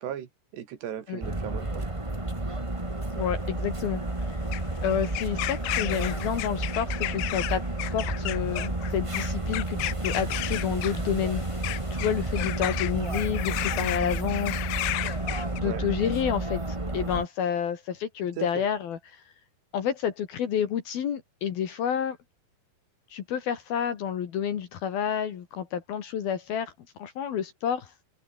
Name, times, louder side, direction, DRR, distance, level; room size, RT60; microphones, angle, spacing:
voice 1, 0.0-1.9 15.6-15.8 18.4-18.7, right 10 dB, 75° right, 4.3 m, -37 dB
sound 1, 1.2-17.2, right 2 dB, 15° right, 1.0 m, -31 dB
sound 2, 2.2-15.6, left 18 dB, 80° left, 2.7 m, -34 dB
voice 2, 3.2-4.4 4.8-11.4 11.9-14.6 15.6-19.2 19.7-22.2 23.1-26.7 27.0-27.9, left 8 dB, 65° left, 3.8 m, -29 dB
omnidirectional pair, 4.9 m